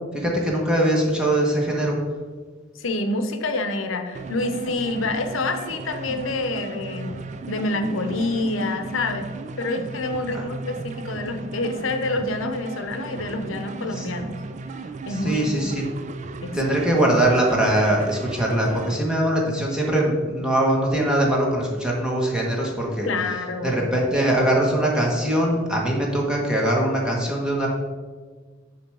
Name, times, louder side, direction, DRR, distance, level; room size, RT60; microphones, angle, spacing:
voice 1, 0.1-1.9 10.3-10.4 14.0-14.1 15.2-15.8 16.5-23.1 23.6-27.7, right 1 dB, 5° right, -3 dB, 1.1 m, -22 dB
voice 2, 2.8-7.2 7.5-9.3 9.6-14.4 15.1-15.7 16.4-16.6 23.0-23.9, left 2 dB, 85° left, 7 dB, 0.7 m, -27 dB
sound 1, 4.1-19.0, right 3 dB, 35° right, 0.3 m, -36 dB
6.8 x 3.3 x 6.1 m, 1.5 s
head